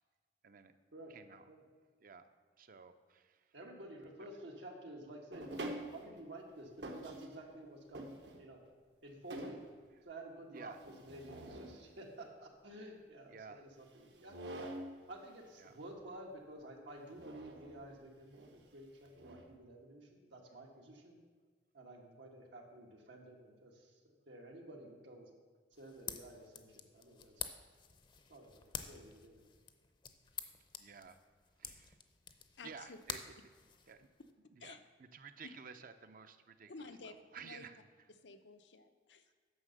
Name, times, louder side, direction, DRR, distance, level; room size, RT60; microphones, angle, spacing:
voice 1, 1.1-1.4 2.0-2.3 2.6-3.5 4.2-4.3 10.5-10.8 13.3-13.6 15.6-15.7 30.8-31.2 31.6-32.0 32.6-33.2 33.9-34.1 34.5-34.8 35.1-37.8, right 5 dB, 50° right, 10 dB, 0.6 m, -53 dB
voice 2, 3.5-5.6 5.9-8.6 9.0-9.6 10.0-14.4 15.1-21.2 21.7-25.3 25.7-27.4 28.3-29.5, right 1 dB, 90° right, 1 dB, 1.6 m, -52 dB
sound 1, 5.3-6.3 6.8-7.5 7.9-8.7 9.1-9.7 10.8-11.8 14.1-15.0 17.2-17.9 18.3-18.5 19.1-19.5, right 1 dB, 70° right, 1.1 m, -46 dB
sound 2, 25.7-34.3, left 6 dB, 25° left, 0.6 m, -49 dB
voice 3, 32.6-33.0 34.6-34.8 36.7-37.8 38.1-39.3, left 3 dB, 80° left, 9 dB, 0.8 m, -53 dB
9.6 x 6.6 x 6.5 m, 1.5 s
head